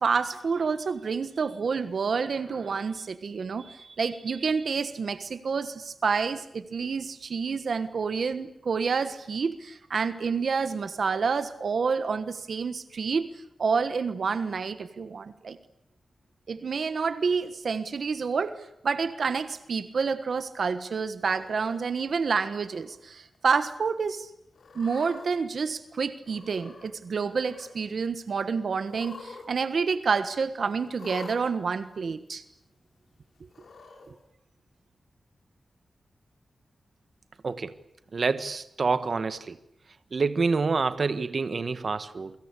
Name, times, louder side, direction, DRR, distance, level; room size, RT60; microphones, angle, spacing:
voice 1, 0.0-13.3 13.6-15.6 16.5-24.3 24.7-32.4, right 5 dB, 70° right, 11 dB, 1.4 m, -28 dB
Cat, 21.2-21.8 22.5-23.0 23.3-23.4 24.5-25.3 26.2-26.9 27.2-27.7 28.8-29.5 29.7-29.8 31.0-31.4 32.3-32.4 33.5-34.1, left 4 dB, 75° left, 6.1 m, -46 dB
voice 2, 37.4-37.8 38.1-39.6 40.1-42.3, right 4 dB, 55° right, 12 dB, 1.5 m, -27 dB
28.5 x 24.0 x 8.4 m, 0.80 s
wide cardioid pair, 110°, 0 cm